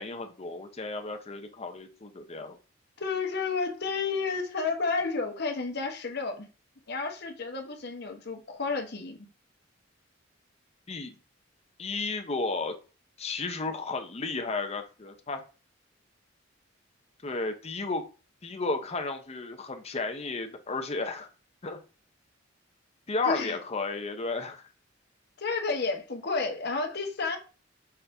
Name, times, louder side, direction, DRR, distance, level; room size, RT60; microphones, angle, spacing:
voice 1, 0.0-2.6 10.9-11.2 11.8-12.7 13.2-15.4 17.2-18.0 18.4-21.3 21.6-21.8 23.1-24.6, left 3 dB, 30° left, 0.6 m, -33 dB
voice 2, 3.0-6.5 6.9-9.2 23.3-23.6 25.4-27.4, left 4 dB, 55° left, 0.9 m, -31 dB
5.6 x 2.5 x 3.4 m
head